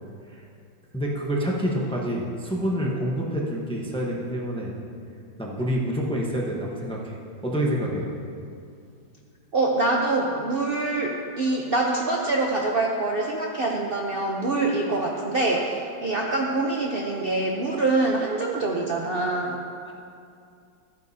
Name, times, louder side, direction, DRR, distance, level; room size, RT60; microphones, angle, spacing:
voice 1, 0.9-4.7 5.4-7.1 7.4-8.1 19.8-19.9, equal, 5° left, -2 dB, 0.5 m, -27 dB
voice 2, 9.5-19.6, right 2 dB, 85° right, -1 dB, 0.5 m, -25 dB
14.5 x 9.3 x 2.8 m, 2.4 s
omnidirectional pair, 2.1 m